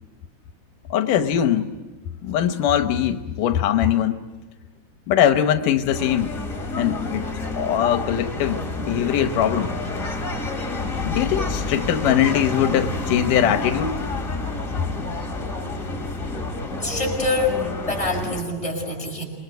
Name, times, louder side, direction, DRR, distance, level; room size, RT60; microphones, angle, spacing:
voice 1, 0.9-1.7 2.2-4.2 5.1-6.3 6.8-7.3 7.6-9.7 11.0-14.0, left 10 dB, 85° left, 8 dB, 2.5 m, -21 dB
sound 1, 5.9-18.4, left 2 dB, 25° left, 3.1 m, -29 dB
voice 2, 16.8-19.2, left 2 dB, 10° left, -1 dB, 6.6 m, -25 dB
28.0 x 22.5 x 8.1 m, 1.2 s
omnidirectional pair, 3.6 m